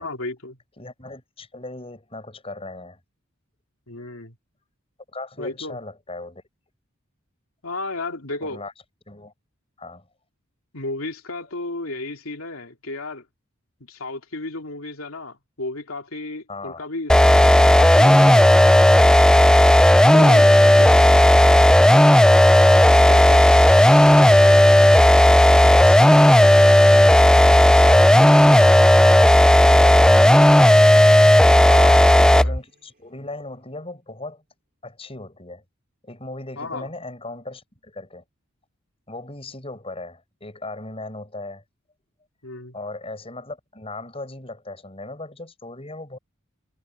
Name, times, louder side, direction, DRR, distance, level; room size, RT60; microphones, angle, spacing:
voice 1, 0.0-0.6 3.9-4.3 5.4-5.8 7.6-8.6 10.7-13.2 13.8-18.8 20.1-20.4 20.8-21.0 23.0-23.4 24.0-24.6 31.6-32.6 36.6-36.9 42.4-42.8, left 2 dB, 85° left, 2.8 m, -33 dB
voice 2, 0.8-3.0 5.1-6.4 8.4-8.7 9.1-9.3 9.8-10.1 16.5-16.9 20.0-22.1 25.7-27.2 27.7-30.8 32.2-34.4 34.8-35.6 36.0-38.2 39.1-41.6 42.7-46.2, left 2 dB, 30° left, 7.4 m, -37 dB
sound 1, 17.1-32.6, left 1 dB, 5° left, 0.4 m, -12 dB
Captain Sparrow, 32.4-32.8, right 1 dB, 50° right, 4.9 m, -44 dB
head